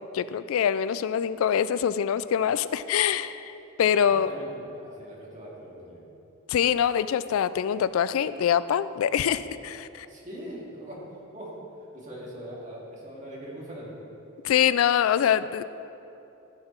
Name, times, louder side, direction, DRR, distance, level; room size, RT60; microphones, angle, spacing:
voice 1, 0.1-3.5 3.8-4.3 6.5-10.1 14.4-15.6, left 8 dB, 80° left, 15 dB, 0.3 m, -24 dB
voice 2, 3.9-6.0 9.9-11.5 11.9-13.9, equal, 35° right, -4 dB, 2.1 m, -41 dB
14.5 x 6.7 x 4.4 m, 2.9 s
head